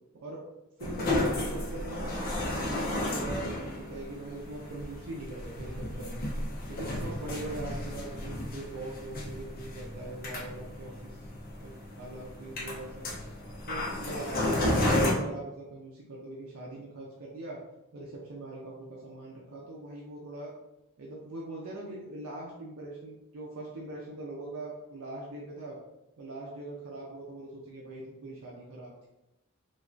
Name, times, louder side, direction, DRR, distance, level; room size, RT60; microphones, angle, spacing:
sound 1, 0.8-15.1, left 1 dB, 45° left, 0.6 m, -33 dB
voice 1, 0.8-2.2 2.6-6.3 6.7-11.3 11.6-13.1 13.7-17.6 17.9-20.5 21.0-25.8 26.2-28.9, right 2 dB, 85° right, -3 dB, 0.5 m, -41 dB
3.1 x 2.3 x 2.5 m, 0.93 s
head